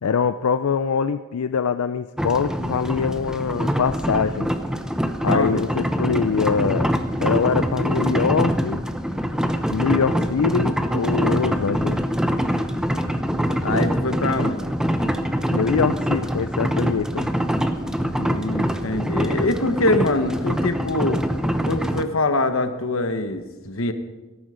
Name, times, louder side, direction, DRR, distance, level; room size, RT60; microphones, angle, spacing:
voice 1, 0.0-4.5 5.2-6.9 7.2-8.8 9.7-12.0 15.5-17.3, left 6 dB, 90° left, 11 dB, 0.5 m, -23 dB
sound 1, 2.2-22.0, equal, 5° right, 0.7 m, -24 dB
voice 2, 5.3-5.6 13.6-14.6 18.2-21.2 21.6-23.9, left 2 dB, 65° left, 8 dB, 1.3 m, -24 dB
18.0 x 13.5 x 5.1 m, 1.2 s
head